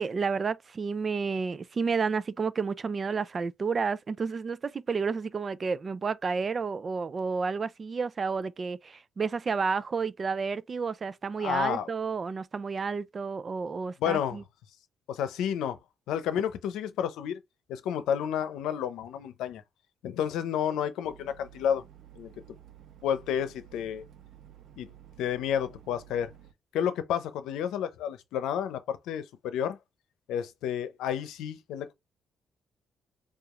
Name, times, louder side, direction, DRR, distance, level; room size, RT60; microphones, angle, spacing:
voice 1, 0.0-14.4, right 5 dB, 40° right, 0.4 m, -31 dB
voice 2, 11.4-11.9 14.0-14.4 15.1-15.8 16.1-17.4 17.7-19.6 20.0-21.8 22.2-22.3 23.0-24.0 24.8-24.9 25.2-26.3 26.7-29.8 30.3-31.9, left 9 dB, 85° left, 0.7 m, -30 dB
sound 1, 21.0-26.5, right 10 dB, 70° right, 0.9 m, -53 dB
4.7 x 2.5 x 3.1 m
cardioid pair, 90°, 0 cm